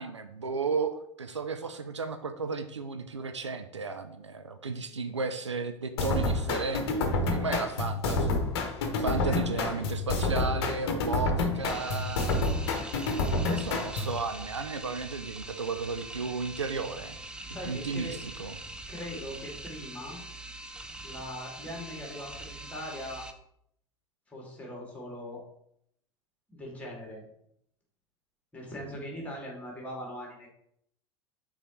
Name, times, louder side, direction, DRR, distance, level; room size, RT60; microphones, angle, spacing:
voice 1, 0.0-8.4 9.0-12.5 13.5-17.2 17.6-18.6, right 4 dB, 80° right, 8 dB, 0.5 m, -34 dB
sound 1, 6.0-14.2, left 2 dB, 55° left, 1.0 m, -29 dB
voice 2, 8.9-9.7 17.4-18.2 18.9-20.2 21.0-23.3 24.3-25.4 26.5-27.2 28.5-30.5, left 1 dB, 10° left, -2 dB, 2.7 m, -40 dB
sound 2, 11.7-23.3, right 2 dB, 5° right, 0.5 m, -43 dB
6.1 x 4.0 x 4.5 m, 0.72 s
figure-of-eight pair, 80°, 15 cm